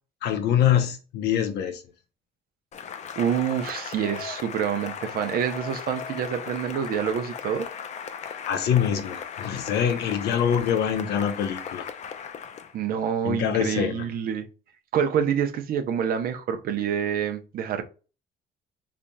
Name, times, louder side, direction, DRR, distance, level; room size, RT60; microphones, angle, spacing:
voice 1, 0.2-1.8 8.4-11.9 13.2-14.0, left 9 dB, 80° left, 0.8 m, -24 dB
Cheering / Applause, 2.7-12.8, left 7 dB, 45° left, 0.5 m, -37 dB
voice 2, 3.2-7.7 12.7-14.5 14.9-17.8, right 8 dB, 60° right, 0.7 m, -27 dB
4.0 x 3.4 x 2.3 m
cardioid pair, 110°, 17 cm